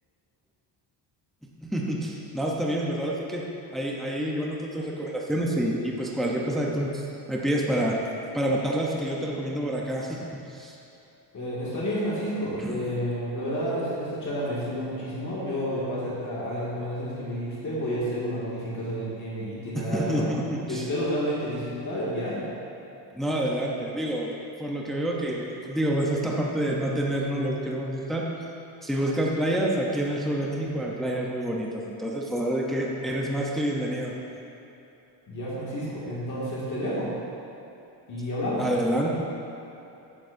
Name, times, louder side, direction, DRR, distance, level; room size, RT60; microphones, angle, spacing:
voice 1, 1.6-3.4 3.7-8.0 8.3-10.2 10.5-10.7 12.6-12.8 19.7-20.9 23.1-24.3 24.6-28.2 28.8-34.1 38.6-39.1, right 1 dB, ahead, -3 dB, 0.7 m, -28 dB
voice 2, 11.3-20.2 20.7-22.5 35.3-37.1 38.1-38.7, equal, 40° left, -8 dB, 2.2 m, -30 dB
14.0 x 9.5 x 2.6 m, 2.9 s
cardioid pair, 170°, 44 cm